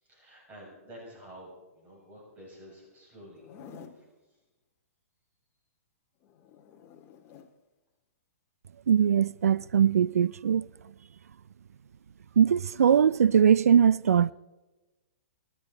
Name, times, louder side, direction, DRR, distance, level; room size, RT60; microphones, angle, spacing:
voice 1, 0.0-4.1, equal, 20° right, 7.5 m, -50 dB
Zipper (clothing), 3.3-4.1 6.2-7.5 9.4-9.7, left 7 dB, 30° left, 1.7 m, -51 dB
voice 2, 8.9-10.6 12.4-14.3, right 8 dB, 80° right, 0.4 m, -21 dB
28.5 x 11.0 x 4.4 m
hypercardioid pair, 125°, 8 cm